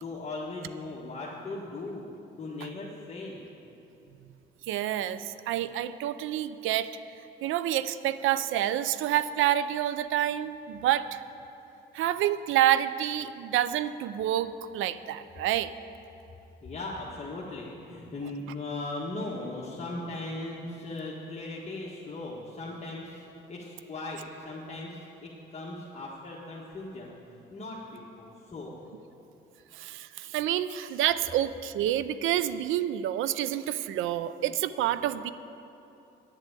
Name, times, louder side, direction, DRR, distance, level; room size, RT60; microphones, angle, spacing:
voice 1, 0.0-3.4 16.6-27.1 27.5-28.7, left 2 dB, 35° left, -5 dB, 1.6 m, -38 dB
voice 2, 4.7-6.9 7.4-11.2 11.9-15.7 29.7-35.3, right 12 dB, 85° right, 14 dB, 0.5 m, -28 dB
10.0 x 8.1 x 8.3 m, 3.0 s
cardioid pair, 90°, 20 cm